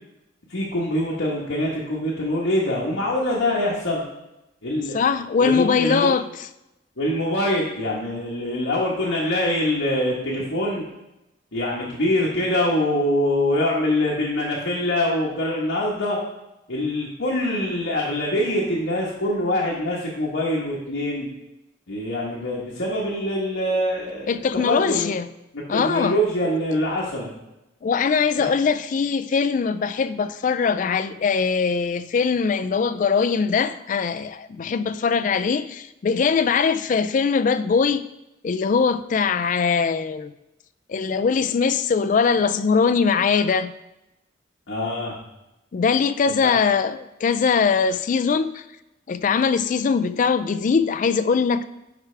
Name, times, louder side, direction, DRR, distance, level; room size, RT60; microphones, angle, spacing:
voice 1, 0.5-4.0 4.6-5.0 5.4-6.1 7.0-10.8 11.5-16.2 16.7-21.3 21.9-24.4 24.6-25.1 25.5-27.3 28.4-28.5 44.7-45.2 46.4-46.5, left 1 dB, 80° left, 1.3 m, -24 dB
voice 2, 4.9-6.2 24.3-25.3 25.7-26.2 27.8-38.0 38.4-40.3 40.9-43.7 45.7-48.6 49.1-51.7, left 5 dB, 40° left, 0.3 m, -21 dB
10.5 x 4.7 x 3.3 m
head